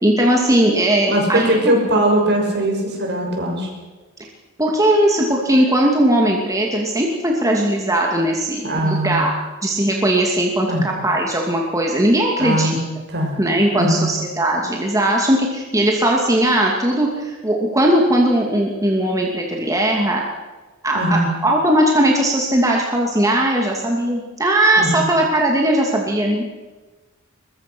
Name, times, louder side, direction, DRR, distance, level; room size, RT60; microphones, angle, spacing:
voice 1, 0.0-1.7 4.6-9.3 9.6-12.8 13.4-20.2 20.8-26.4, right 1 dB, 15° right, 0 dB, 2.6 m, -18 dB
voice 2, 1.1-3.7 8.6-9.2 10.7-10.8 12.4-12.8 13.1-13.4 13.7-14.1 20.9-21.3 24.8-25.0, right 1 dB, 55° right, 1 dB, 6.4 m, -20 dB
22.5 x 22.0 x 6.3 m, 1.2 s
head